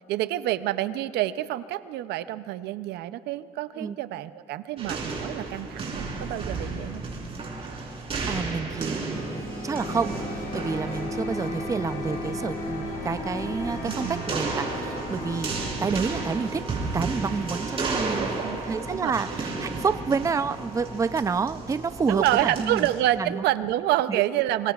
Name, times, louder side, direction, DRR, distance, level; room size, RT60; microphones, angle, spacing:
voice 1, 0.1-7.0 13.8-14.2 17.8-18.6 18.9-19.1 22.1-24.7, right 14 dB, 80° right, 14 dB, 0.5 m, -28 dB
sound 1, 4.8-23.0, right 3 dB, 35° right, 4.0 m, -34 dB
voice 2, 8.3-16.6 16.9-22.9 23.2-23.5 24.1-24.2, right 5 dB, 20° right, 12 dB, 0.5 m, -29 dB
sound 2, 9.1-22.9, equal, 20° left, 3.1 m, -39 dB
sound 3, 9.7-15.7, left 1 dB, 70° left, 4.9 m, -36 dB
25.0 x 24.5 x 2.4 m, 2.2 s
cardioid pair, 110°, 17 cm